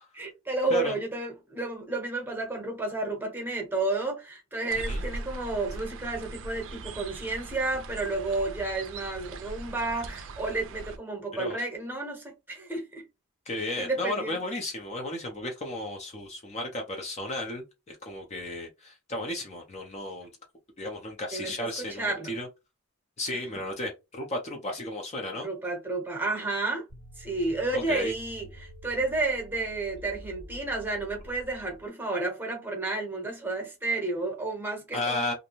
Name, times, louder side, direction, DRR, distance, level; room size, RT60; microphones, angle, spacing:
voice 1, 0.2-13.0 13.6-14.4 21.3-22.3 23.3-23.4 25.4-26.8 27.2-35.3, right 2 dB, 10° right, 0.9 m, -31 dB
sound 1, 4.7-11.0, right 2 dB, 65° right, 0.4 m, -40 dB
voice 2, 13.5-20.3 20.8-22.5 23.2-25.5 27.7-28.1 34.9-35.3, left 1 dB, 30° left, 0.6 m, -34 dB
sound 2, 26.9-31.9, equal, 65° left, 1.2 m, -48 dB
2.5 x 2.2 x 2.9 m
head